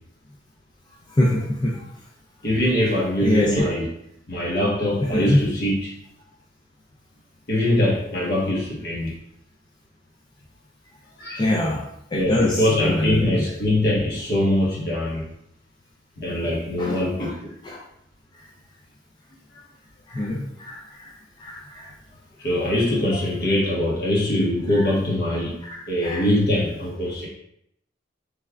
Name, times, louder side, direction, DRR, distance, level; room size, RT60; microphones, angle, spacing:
voice 1, 1.2-1.7 3.2-3.7 5.0-5.4 11.4-11.8 12.1-13.5 16.8-17.3 17.6-17.8 20.1-20.8 21.4-21.9 22.6-22.7 26.0-26.2, left 1 dB, 25° left, -3 dB, 0.4 m, -23 dB
voice 2, 2.4-3.9 4.3-5.9 7.5-9.1 11.2-11.5 12.1-15.3 16.2-17.5 20.2-20.3 22.4-25.6 25.9-27.3, left 1 dB, 60° left, -5 dB, 1.1 m, -23 dB
3.5 x 3.2 x 2.2 m, 0.74 s
head